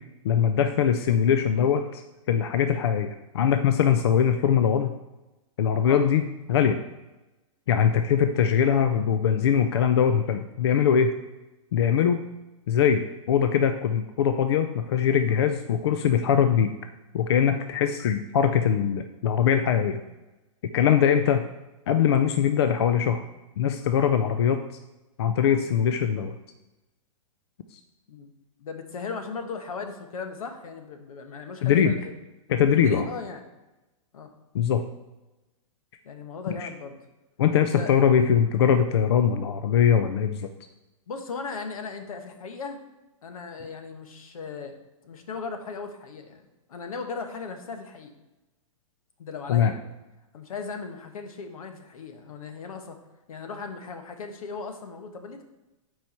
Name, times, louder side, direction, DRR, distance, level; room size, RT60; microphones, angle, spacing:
voice 1, 0.2-2.0 2.3-4.9 5.6-6.2 6.5-6.8 7.7-11.1 11.7-12.2 12.7-16.7 17.1-20.0 20.7-21.4 21.9-23.2 23.6-24.6 25.2-26.3 31.6-31.9 32.5-33.0 34.5-34.8 36.6-36.7 37.4-40.5 49.5-49.7, left 8 dB, 50° left, 8 dB, 0.4 m, -22 dB
voice 2, 8.3-8.9 20.8-21.0 28.1-28.3 28.6-32.1 32.8-33.4 34.1-34.3 36.0-37.0 37.8-37.9 41.1-42.8 43.2-44.8 45.0-48.1 49.2-49.8 50.3-53.0 53.3-55.4, left 4 dB, 80° left, 5 dB, 1.3 m, -37 dB
7.3 x 4.6 x 5.5 m, 1.0 s
hypercardioid pair, 175°, 18 cm